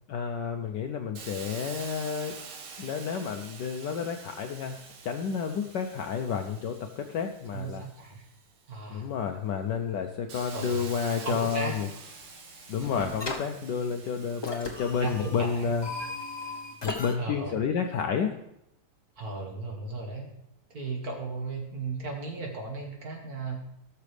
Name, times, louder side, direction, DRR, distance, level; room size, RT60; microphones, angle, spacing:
voice 1, 0.1-2.4 2.8-4.8 5.0-7.8 8.9-11.9 12.7-15.9 16.5-16.6 16.8-18.3, left 6 dB, 70° left, 5 dB, 1.1 m, -30 dB
Hiss, 1.2-8.7 9.2-17.0, right 5 dB, 85° right, 2.1 m, -47 dB
voice 2, 7.5-8.2 8.7-9.1 10.5-10.9 11.2-11.7 12.8-12.9 14.5-14.6 15.0-15.7 17.2-17.5 19.2-20.3 20.7-23.6, right 3 dB, 45° right, 0 dB, 2.2 m, -36 dB
sound 1, 12.0-12.5 12.8-13.4 14.4-17.1, left 3 dB, 40° left, 0.3 m, -37 dB
17.0 x 6.8 x 3.3 m, 0.79 s
omnidirectional pair, 2.3 m